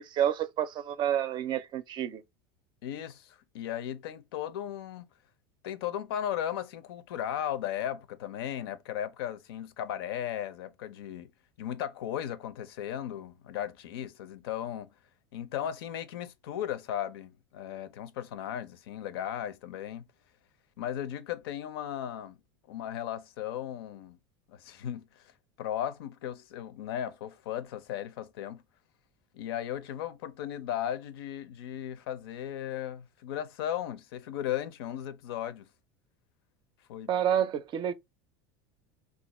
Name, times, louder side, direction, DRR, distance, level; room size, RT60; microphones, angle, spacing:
voice 1, 0.0-2.2 37.1-37.9, right 10 dB, 40° right, 0.4 m, -29 dB
voice 2, 2.8-5.1 5.6-11.3 11.6-14.9 15.3-20.1 20.8-22.4 22.7-24.2 24.5-25.2 25.6-28.6 29.3-35.7 36.9-37.1, left 10 dB, 85° left, 0.5 m, -36 dB
2.5 x 2.3 x 4.0 m
supercardioid pair, 115°, 12 cm